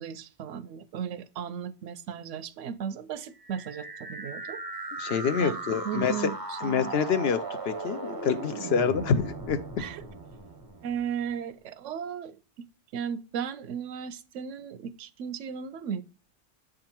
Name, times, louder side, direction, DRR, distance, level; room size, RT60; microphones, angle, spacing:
voice 1, 0.0-4.6 5.4-6.9 9.8-10.0 10.8-12.4 12.9-16.0, right 8 dB, 85° right, 0.9 m, -36 dB
sound 1, 3.4-11.3, right 3 dB, 25° right, 0.5 m, -38 dB
voice 2, 5.0-6.1 6.6-9.6, left 6 dB, 65° left, 0.8 m, -27 dB
7.8 x 3.7 x 4.4 m
omnidirectional pair, 1.2 m